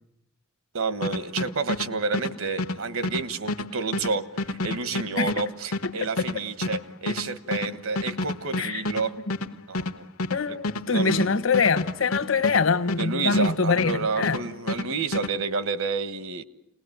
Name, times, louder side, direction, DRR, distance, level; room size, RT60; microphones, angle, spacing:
voice 1, 0.7-9.1 9.7-10.1 10.5-10.6 10.9-11.3 13.0-16.4, right 4 dB, 75° right, 1.4 m, -29 dB
sound 1, 1.0-14.0 14.2-15.3, left 2 dB, 85° left, 1.3 m, -30 dB
voice 2, 10.3-14.4, left 4 dB, 65° left, 1.1 m, -24 dB
29.0 x 20.0 x 9.2 m
head